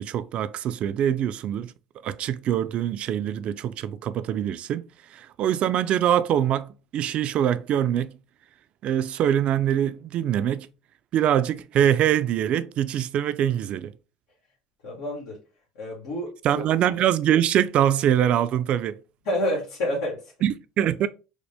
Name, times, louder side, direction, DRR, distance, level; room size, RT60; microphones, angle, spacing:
voice 1, 0.0-1.7 2.0-4.8 5.1-8.2 8.8-10.7 11.1-14.0 16.4-19.0 20.4-21.1, right 10 dB, 55° right, 0.3 m, -24 dB
voice 2, 14.8-15.4 15.7-16.7 19.2-20.3, left 1 dB, 85° left, 1.4 m, -29 dB
5.0 x 2.1 x 3.4 m
supercardioid pair, 95°, 2 cm